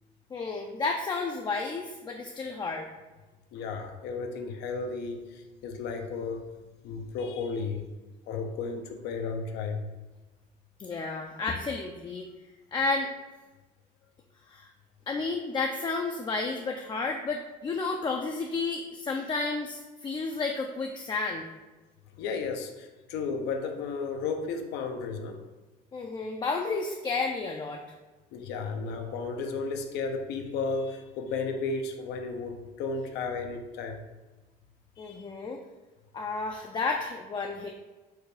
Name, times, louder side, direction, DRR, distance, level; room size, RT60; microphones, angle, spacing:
voice 1, 0.3-2.9 10.8-12.3 12.7-13.1 14.5-14.7 15.1-21.5 25.9-27.8 35.0-35.6 36.1-37.7, left 3 dB, 25° left, 2 dB, 0.4 m, -31 dB
voice 2, 3.5-6.5 6.8-7.9 8.3-9.8 22.2-25.4 28.3-34.0 35.0-35.3, left 4 dB, 85° left, 5 dB, 0.6 m, -33 dB
4.6 x 2.3 x 4.8 m, 1.2 s
cardioid pair, 110°, 17 cm